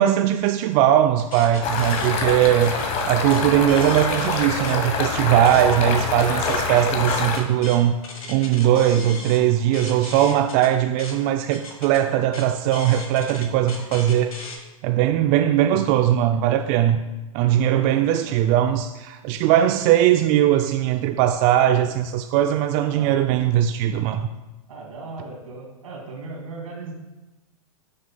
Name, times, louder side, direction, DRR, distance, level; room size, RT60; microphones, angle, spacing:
voice 1, 0.0-2.7 3.1-7.9 8.3-14.3 14.8-17.0 17.3-24.3, right 11 dB, 35° right, 7 dB, 0.4 m, -20 dB
sound 1, 1.2-4.8 5.2-14.6, left 2 dB, 75° left, 1.6 m, -38 dB
sound 2, 1.6-7.4, left 4 dB, 35° left, 1.1 m, -25 dB
voice 2, 17.6-18.6 22.9-23.3 24.7-26.9, right 3 dB, 70° right, -1 dB, 2.4 m, -38 dB
12.0 x 6.4 x 2.3 m, 1.1 s
figure-of-eight pair, 105°, 18 cm